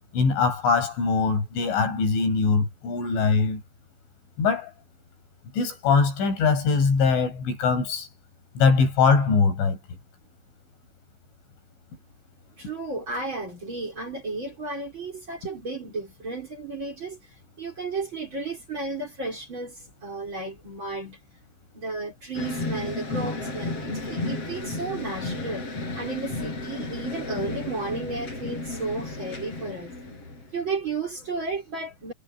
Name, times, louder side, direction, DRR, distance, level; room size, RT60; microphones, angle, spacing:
voice 1, 0.1-3.6 4.4-4.7 5.5-8.1 8.6-9.8, left 5 dB, 75° left, 8.4 m, -22 dB
voice 2, 12.6-17.2 17.6-21.2 21.7-30.0 30.5-32.1, right 3 dB, 25° right, 5.1 m, -33 dB
sound 1, 22.3-30.7, left 2 dB, 30° left, 8.5 m, -33 dB
omnidirectional pair, 5.6 m